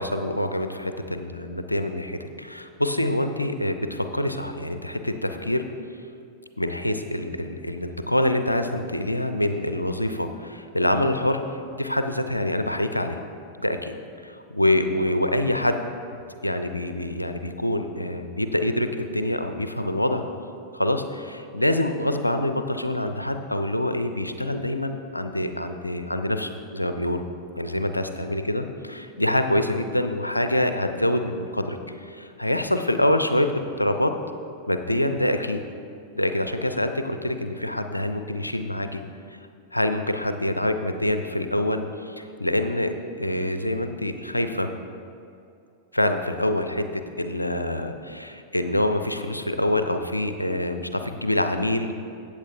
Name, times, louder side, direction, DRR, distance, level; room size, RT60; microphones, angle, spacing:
voice 1, 0.0-5.6 6.6-11.4 11.7-13.2 13.6-13.9 14.2-20.2 20.7-27.2 27.6-34.2 34.7-35.6 36.1-39.0 39.7-44.7 45.9-51.9, left 1 dB, 85° left, 8 dB, 0.5 m, -26 dB
14.5 x 8.4 x 2.6 m, 2.6 s
figure-of-eight pair, 90°, 0 cm